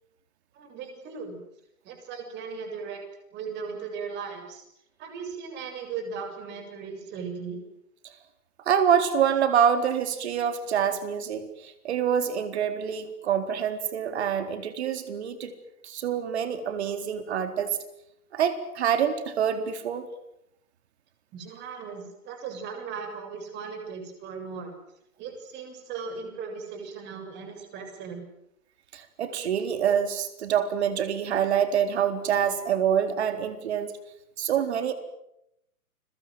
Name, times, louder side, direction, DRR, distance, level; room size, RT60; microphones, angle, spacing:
voice 1, 0.5-1.4 1.8-3.0 3.3-4.6 5.0-7.6 21.3-24.8 25.2-28.2, right 5 dB, 25° right, 5 dB, 7.3 m, -37 dB
voice 2, 8.7-15.5 15.8-17.8 18.3-20.1 28.9-33.9 34.4-34.9, right 8 dB, 45° right, 9 dB, 4.2 m, -26 dB
30.0 x 23.0 x 7.9 m, 0.80 s
figure-of-eight pair, 125°, 44 cm